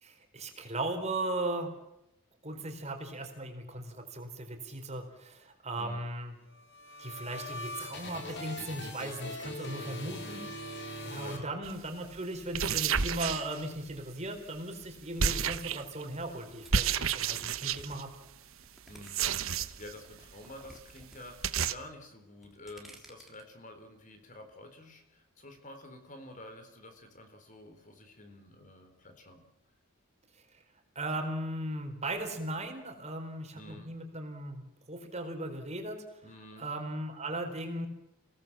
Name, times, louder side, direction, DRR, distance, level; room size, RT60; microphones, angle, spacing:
voice 1, 0.0-1.7 2.4-6.3 7.0-18.1 31.0-36.0 36.6-37.9, right 1 dB, 30° right, 5 dB, 4.1 m, -37 dB
sound 1, 6.5-12.1, left 1 dB, 55° left, 5.0 m, -42 dB
voice 2, 11.1-11.6 18.9-29.5 33.5-33.9 36.2-36.7, left 1 dB, 35° left, 6 dB, 4.1 m, -50 dB
sound 2, 11.6-11.8 12.4-14.0 15.2-16.0 16.7-18.0 19.0-19.9 20.2-20.3 20.7-20.8 21.0-21.1 21.4-21.7, right 6 dB, 70° right, 1.1 m, -30 dB
sound 3, 16.6-19.5 19.9-21.2 21.5-21.9 22.3-23.4, right 1 dB, ahead, 3.3 m, -55 dB
29.0 x 18.5 x 7.5 m, 0.87 s
head